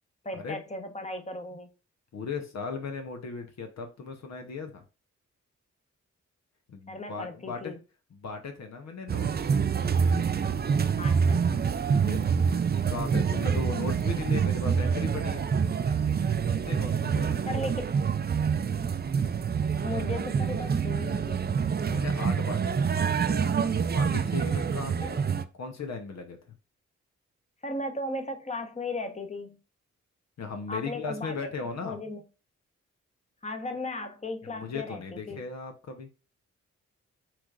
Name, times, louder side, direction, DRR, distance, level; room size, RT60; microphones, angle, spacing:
voice 1, 0.2-1.7 6.9-7.8 11.0-11.4 17.5-17.9 19.8-21.6 25.0-25.1 27.6-29.6 30.7-32.2 33.4-35.4, left 2 dB, 25° left, 1.0 m, -36 dB
voice 2, 2.1-4.8 6.7-7.7 8.1-9.5 12.0-12.2 12.9-15.5 16.5-17.7 21.8-22.9 23.9-25.2 25.6-26.5 30.4-32.0 34.4-36.1, left 4 dB, 65° left, 0.9 m, -37 dB
sound 1, 9.1-25.4, right 6 dB, 35° right, 0.5 m, -26 dB
6.0 x 3.3 x 2.4 m
cardioid pair, 50°, 29 cm